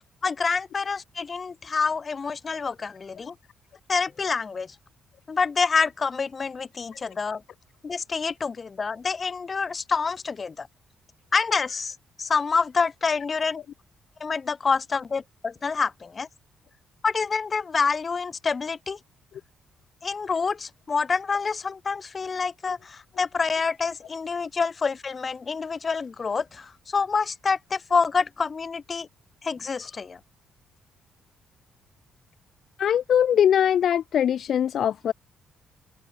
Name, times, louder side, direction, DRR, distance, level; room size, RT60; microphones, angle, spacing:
voice 1, 0.2-3.3 3.9-4.8 5.3-7.4 7.8-10.7 11.3-13.6 14.2-16.3 17.0-19.0 20.0-29.1 29.4-30.2, left 5 dB, 35° left, 5.8 m, -27 dB
voice 2, 32.8-35.1, left 9 dB, 65° left, 2.1 m, -21 dB
open air
cardioid pair, 90°, 0 cm